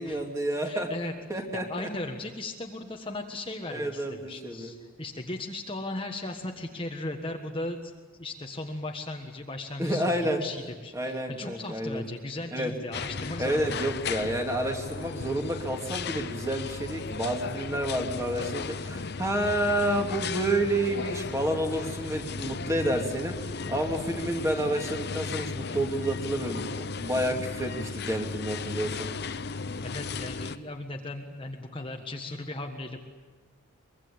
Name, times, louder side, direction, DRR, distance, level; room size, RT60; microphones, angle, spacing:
voice 1, 0.0-0.9 1.3-1.9 3.7-4.7 9.8-10.4 10.9-12.0 12.5-12.7 13.4-23.3 23.7-29.1, right 1 dB, 15° right, 3 dB, 2.6 m, -29 dB
voice 2, 0.6-1.1 1.5-7.9 8.2-13.9 27.2-27.3 29.8-33.0, left 2 dB, 25° left, 3 dB, 1.4 m, -37 dB
sound 1, 12.9-30.6, left 4 dB, 50° left, 0.8 m, -35 dB
24.0 x 22.5 x 8.6 m, 1.4 s
head